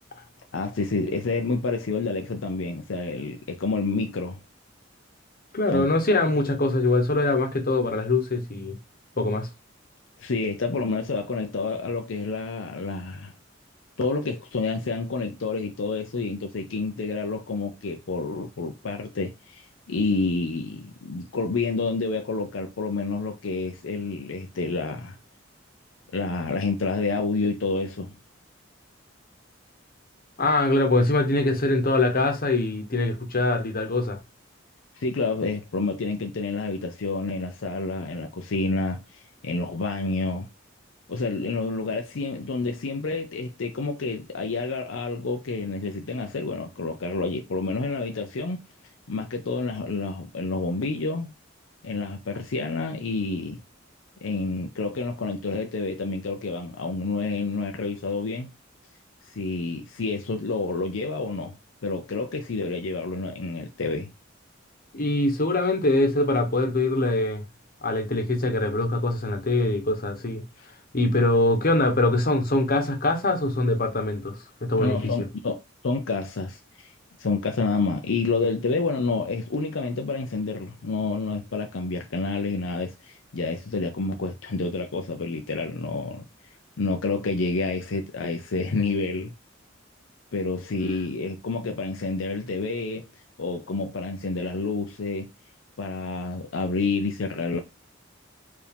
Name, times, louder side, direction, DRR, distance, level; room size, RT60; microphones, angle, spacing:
voice 1, 0.5-4.4 5.7-5.9 10.2-13.3 14.0-25.2 26.1-28.1 35.0-39.0 39.4-40.5 41.1-48.6 49.1-51.3 51.8-53.6 54.2-58.5 59.3-61.6 61.8-64.1 74.8-76.9 77.2-86.3 86.8-89.3 90.3-93.1 93.4-95.3 95.8-97.6, left 3 dB, 75° left, 0.6 m, -29 dB
voice 2, 5.5-8.8 9.2-9.5 30.4-34.2 64.9-67.4 67.8-70.4 70.9-75.1, left 2 dB, 50° left, 1.1 m, -23 dB
4.7 x 2.7 x 3.5 m
head